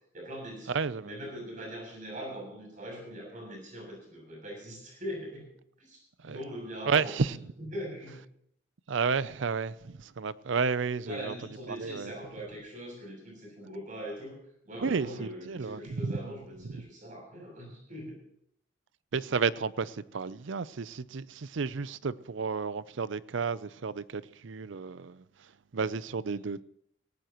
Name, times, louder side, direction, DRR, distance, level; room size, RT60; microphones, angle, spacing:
voice 1, 0.1-0.7 1.0-5.5 5.8-7.1 7.6-8.2 11.0-14.3 14.7-18.2 26.3-26.4, equal, 40° right, 7.7 m, -41 dB
voice 2, 0.7-1.2 6.2-6.4 6.9-7.4 8.9-11.3 11.7-12.1 14.8-16.3 16.6-16.8 19.1-25.2 25.7-26.6, right 5 dB, 70° right, 0.5 m, -32 dB
18.0 x 18.0 x 3.0 m
head